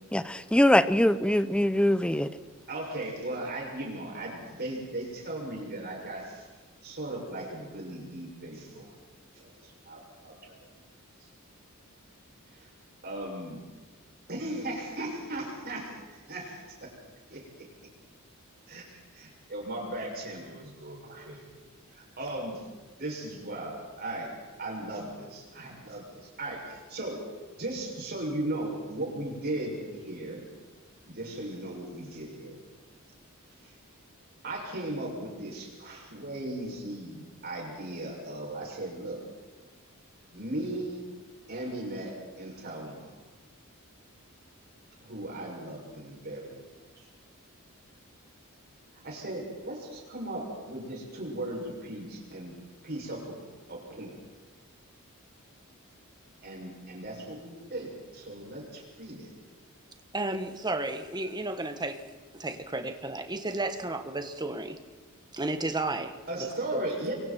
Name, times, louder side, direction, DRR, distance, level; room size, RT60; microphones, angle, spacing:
voice 1, 0.1-2.3, left 1 dB, 5° left, 13 dB, 0.7 m, -23 dB
voice 2, 2.7-6.5 6.8-8.9 9.4-10.6 11.2-11.3 12.5-12.7 13.0-13.6 14.3-16.9 17.3-17.7 18.7-21.5 21.9-22.7 23.0-27.2 27.6-30.4 31.1-32.6 33.6-33.7 34.4-39.2 40.3-41.0 41.5-43.1 45.0-46.6 47.0-47.1 49.0-52.6 52.8-53.4 53.7-54.2 56.4-59.3 66.3-67.1, right 1 dB, 50° right, -2 dB, 7.0 m, -37 dB
voice 3, 60.1-62.0 62.3-64.8 65.3-66.1 66.4-66.8, right 2 dB, 20° right, 7 dB, 1.5 m, -33 dB
29.0 x 24.0 x 4.6 m, 1.3 s
head